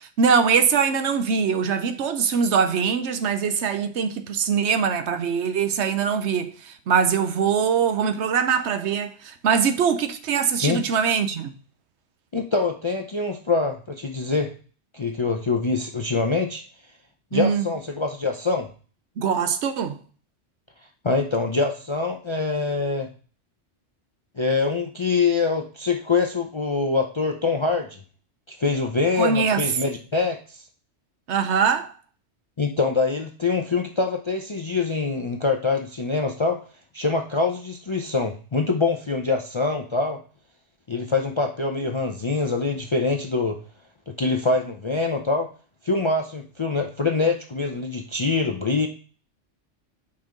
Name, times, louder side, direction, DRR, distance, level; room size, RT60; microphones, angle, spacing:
voice 1, 0.0-11.5 17.3-17.7 19.2-20.0 29.2-29.7 31.3-31.9, right 6 dB, 70° right, 0.9 m, -22 dB
voice 2, 12.3-14.5 14.9-16.6 17.3-18.7 21.0-23.1 24.4-28.0 28.5-30.6 32.6-36.6 36.9-40.2 40.9-43.6 44.1-45.5 45.8-48.9, left 4 dB, 40° left, 0.4 m, -24 dB
5.6 x 4.6 x 3.8 m
omnidirectional pair, 1.2 m